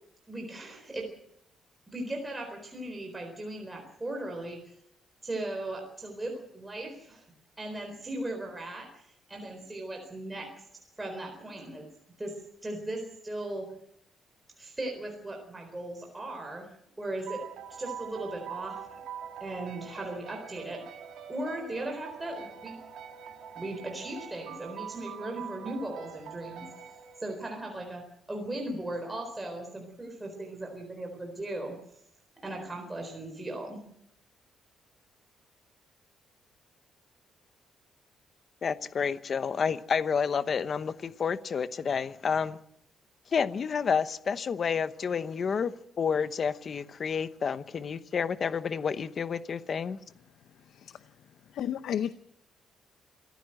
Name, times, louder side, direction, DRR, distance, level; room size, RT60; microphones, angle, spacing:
voice 1, 0.3-1.1 1.9-4.7 5.2-7.3 7.6-10.5 11.0-11.9 12.2-12.3 12.6-13.7 14.6-16.7 17.0-17.4 17.7-18.8 19.4-20.8 21.3-22.8 23.5-26.7 27.2-28.0 28.3-31.8 32.4-33.8, right 1 dB, 10° right, 4.1 m, -37 dB
sound 1, 17.3-27.6, right 8 dB, 80° right, 2.4 m, -44 dB
voice 2, 38.6-42.6 43.3-50.0, left 6 dB, 35° left, 0.9 m, -30 dB
voice 3, 50.7-51.0 51.5-52.1, left 9 dB, 65° left, 0.8 m, -32 dB
27.0 x 14.5 x 7.8 m
cardioid pair, 170°, 0 cm